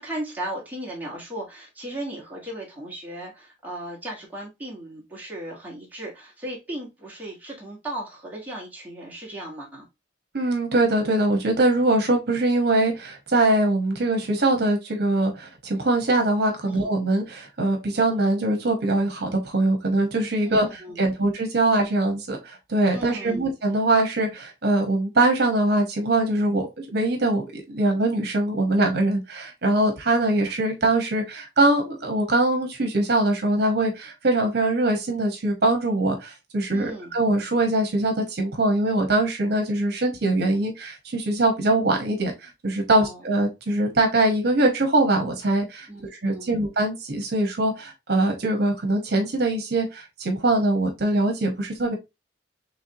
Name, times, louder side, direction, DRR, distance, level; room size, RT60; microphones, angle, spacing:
voice 1, 0.0-9.8 16.6-16.9 20.4-21.1 22.9-23.5 36.7-37.1 42.9-43.3 45.9-46.6, right 1 dB, 10° right, -4 dB, 1.5 m, -36 dB
voice 2, 10.3-52.0, right 2 dB, 60° right, 3 dB, 1.1 m, -22 dB
4.5 x 3.3 x 2.7 m, 0.22 s
head